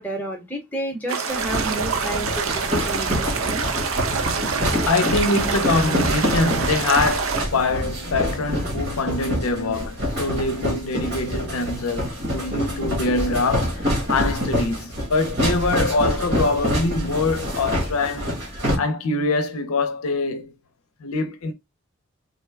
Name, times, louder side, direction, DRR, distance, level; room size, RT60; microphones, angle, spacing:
voice 1, 0.0-3.6, right 1 dB, 5° left, 0.8 m, -31 dB
sound 1, 1.1-7.5, right 5 dB, 70° right, 0.6 m, -26 dB
sound 2, 1.3-18.7, equal, 50° right, 1.6 m, -26 dB
voice 2, 4.8-18.3 18.8-20.5 21.0-21.5, left 3 dB, 75° left, 0.5 m, -24 dB
3.6 x 2.1 x 3.3 m
head